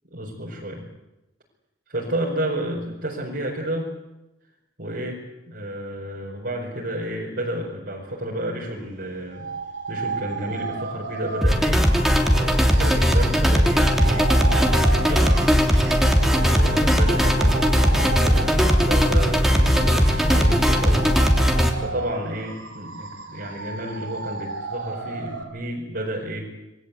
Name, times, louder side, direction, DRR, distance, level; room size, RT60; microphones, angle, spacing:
voice 1, 0.1-0.8 1.9-3.9 4.8-9.5 9.9-15.4 16.3-21.5 21.8-26.5, right 1 dB, 55° right, -3 dB, 4.8 m, -31 dB
sound 1, 9.3-25.4, right 4 dB, 85° right, 4.7 m, -33 dB
sound 2, 11.4-21.7, equal, ahead, 3.1 m, -18 dB
27.0 x 21.5 x 8.3 m, 0.99 s
head